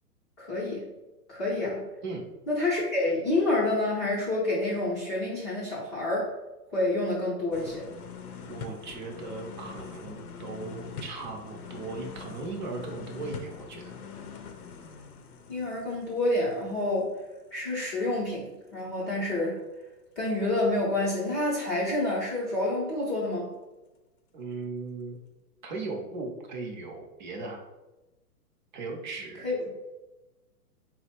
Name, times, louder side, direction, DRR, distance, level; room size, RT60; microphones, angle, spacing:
voice 1, 0.4-0.9 1.3-1.9 2.5-6.3 6.7-7.9 15.5-17.2 17.5-19.6 20.2-23.5 29.4-29.8, left 2 dB, 20° left, -8 dB, 0.6 m, -28 dB
sound 1, 7.5-17.3 17.7-17.8, left 5 dB, 70° left, 0.7 m, -43 dB
voice 2, 8.4-14.0 24.3-25.2 25.6-27.6 28.7-29.5, right 3 dB, 30° right, 1 dB, 0.6 m, -38 dB
3.9 x 2.1 x 4.3 m, 1.1 s
hypercardioid pair, 160°, 46 cm